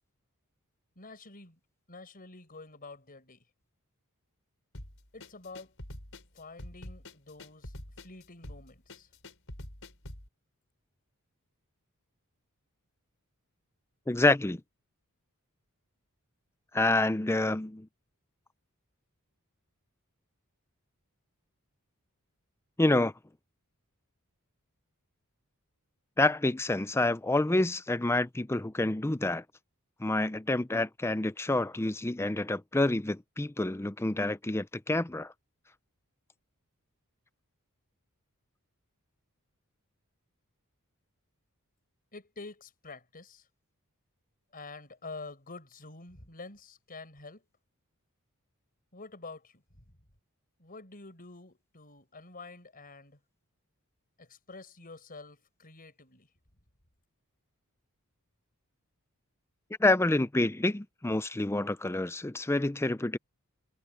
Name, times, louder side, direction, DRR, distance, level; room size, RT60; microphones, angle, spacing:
voice 1, 1.0-1.6 1.9-3.4 5.1-5.7 6.3-7.7 8.0-9.1 42.1-43.5 44.5-47.4 48.9-49.8 50.6-53.2 54.2-56.3, left 3 dB, 40° left, 5.8 m, -48 dB
sound 1, 4.7-10.3, left 1 dB, 65° left, 5.0 m, -45 dB
voice 2, 14.1-14.6 16.7-17.9 22.8-23.1 26.2-29.4 30.0-35.3 59.8-63.2, left 2 dB, 10° left, 0.6 m, -28 dB
head